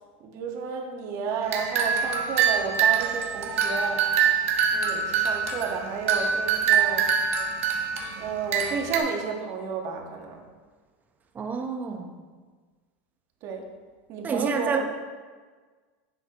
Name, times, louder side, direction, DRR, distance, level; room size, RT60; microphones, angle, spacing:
voice 1, 0.2-4.0 4.7-7.1 8.2-10.4 13.4-13.7 14.1-14.8, right 5 dB, 45° right, 2 dB, 1.6 m, -32 dB
sound 1, 1.4-9.0, right 7 dB, 85° right, 1.4 m, -25 dB
voice 2, 11.3-12.1 14.2-14.8, right 5 dB, 25° right, 4 dB, 1.1 m, -28 dB
10.5 x 7.7 x 3.1 m, 1.5 s
supercardioid pair, 125°, 7 cm